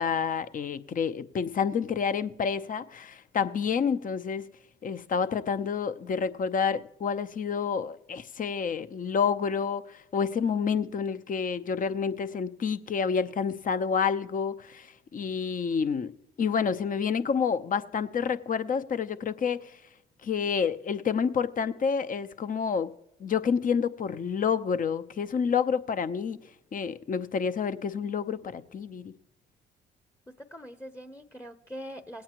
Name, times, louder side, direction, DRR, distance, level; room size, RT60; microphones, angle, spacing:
voice 1, 0.0-4.5 4.8-16.1 16.4-19.7 20.2-22.9 23.2-26.4 26.7-29.1, left 6 dB, 45° left, 0.7 m, -29 dB
voice 2, 30.3-32.2, equal, 15° left, 0.9 m, -43 dB
18.5 x 8.7 x 3.0 m
hypercardioid pair, 50°, 20 cm